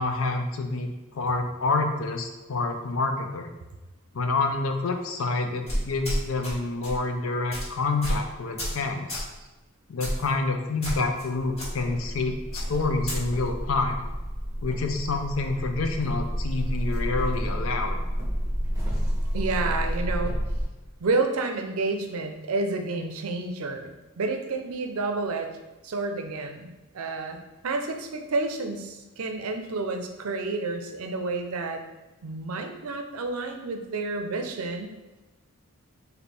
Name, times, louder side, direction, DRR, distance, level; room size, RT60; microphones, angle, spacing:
voice 1, 0.0-3.5 4.1-9.3 9.9-14.1 14.6-18.0, left 3 dB, 70° left, 5 dB, 0.5 m, -28 dB
sound 1, 5.7-6.5 6.8-7.0 7.5-7.7 8.0-8.2 8.6-8.8 9.1-9.3 10.0-10.3 10.8-11.3 11.6-11.7 12.5-13.2, equal, 30° left, 1.4 m, -30 dB
sound 2, 11.3-20.6, equal, 15° right, 0.9 m, -30 dB
voice 2, 19.3-20.4 21.0-25.6 25.8-31.8 32.2-34.9, right 3 dB, 85° right, 5 dB, 0.5 m, -30 dB
4.2 x 2.7 x 3.3 m, 1.1 s
head